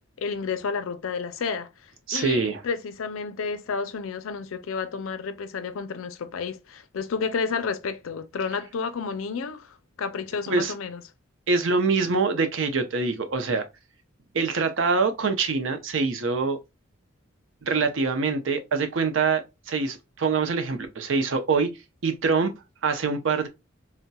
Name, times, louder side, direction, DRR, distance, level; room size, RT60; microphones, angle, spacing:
voice 1, 0.2-11.0, left 5 dB, 85° left, 0.5 m, -31 dB
voice 2, 2.1-2.6 10.5-10.7 11.5-13.6 14.3-16.6 17.6-21.7 22.0-22.5 22.8-23.5, right 4 dB, 70° right, 0.6 m, -24 dB
4.0 x 2.1 x 2.2 m
head